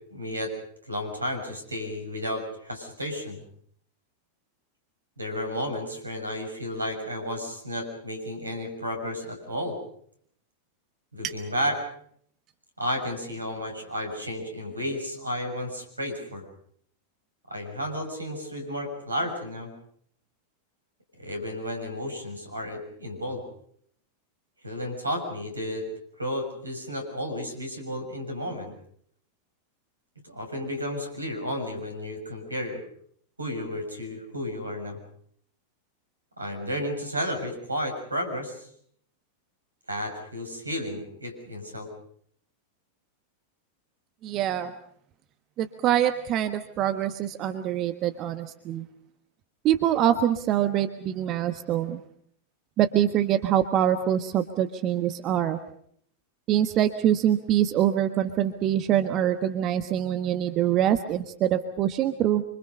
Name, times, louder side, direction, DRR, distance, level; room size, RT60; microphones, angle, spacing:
voice 1, 0.1-0.5 0.9-3.4 5.2-9.8 11.1-11.8 12.8-16.4 17.5-19.7 21.2-23.5 24.6-25.9 26.2-28.7 30.2-32.8 33.4-35.0 36.4-38.7 39.9-41.9, equal, 80° right, 5 dB, 6.8 m, -32 dB
voice 2, 44.2-44.7 45.6-48.8 49.6-52.0 52.8-55.6 56.5-62.4, right 11 dB, 35° right, 9 dB, 1.3 m, -24 dB
27.0 x 25.5 x 5.5 m, 0.64 s
figure-of-eight pair, 90°, 0 cm